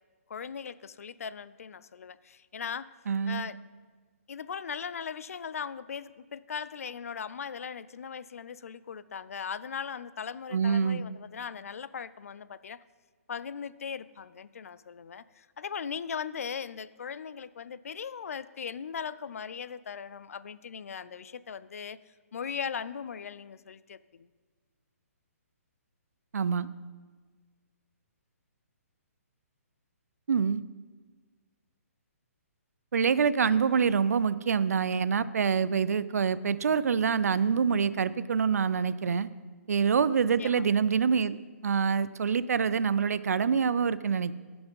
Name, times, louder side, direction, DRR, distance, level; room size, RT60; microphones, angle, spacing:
voice 1, 0.3-2.9 3.3-3.6 4.3-12.8 13.3-22.0 22.3-24.3 40.4-40.6, left 7 dB, 65° left, 17 dB, 0.4 m, -39 dB
voice 2, 3.1-3.5 10.5-11.0 26.3-26.7 30.3-30.6 32.9-39.3 39.7-41.4 41.6-44.3, right 6 dB, 80° right, 16 dB, 0.4 m, -26 dB
13.5 x 6.0 x 5.3 m, 1.5 s
hypercardioid pair, 175°, 8 cm